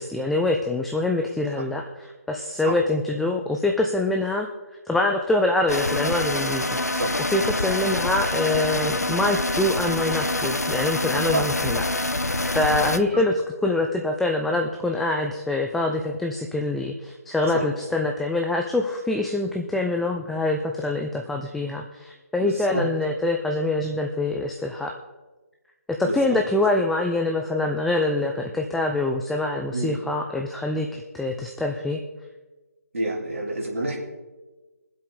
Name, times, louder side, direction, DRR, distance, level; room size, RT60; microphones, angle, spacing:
voice 1, 0.0-4.5 4.9-6.8 7.2-11.9 12.1-12.2 12.5-24.9 25.9-32.0, left 2 dB, ahead, 1 dB, 0.4 m, -25 dB
sound 1, 5.7-13.0, left 2 dB, 85° left, 0.7 m, -26 dB
voice 2, 22.4-22.8 26.0-26.2 29.7-29.9 32.9-34.0, right 2 dB, 55° right, -2 dB, 3.5 m, -28 dB
23.0 x 7.7 x 3.8 m, 1.2 s
figure-of-eight pair, 145°, 8 cm